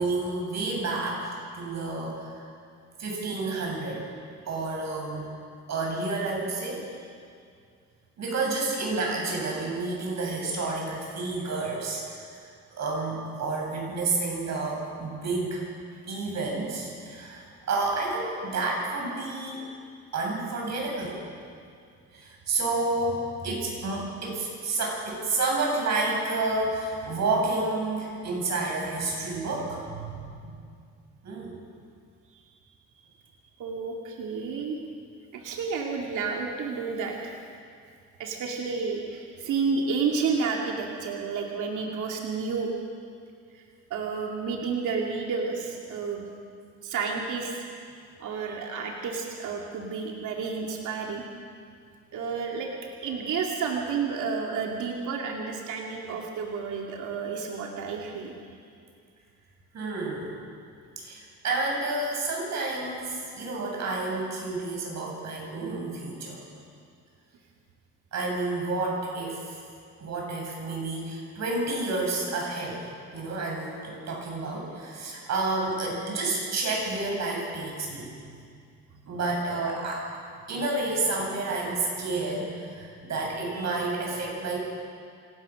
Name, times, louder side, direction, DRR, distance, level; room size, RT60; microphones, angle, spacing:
voice 1, 0.0-2.4 3.0-4.1 4.5-5.3 5.7-6.8 8.2-12.0 12.7-15.6 16.1-19.6 20.1-21.2 22.1-30.6 31.2-31.5 59.7-60.4 61.0-66.4 68.1-69.6 70.0-72.8 73.1-78.1 79.1-80.1 80.5-84.6, right 3 dB, 60° right, -1 dB, 7.8 m, -30 dB
voice 2, 33.6-34.8 35.3-37.4 38.2-42.7 43.5-43.6 43.9-46.3 46.8-47.6 48.2-51.2 52.1-52.7 53.0-58.3, right 5 dB, 80° right, 0 dB, 2.6 m, -31 dB
26.5 x 18.0 x 6.4 m, 2.2 s
cardioid pair, 90°, 30 cm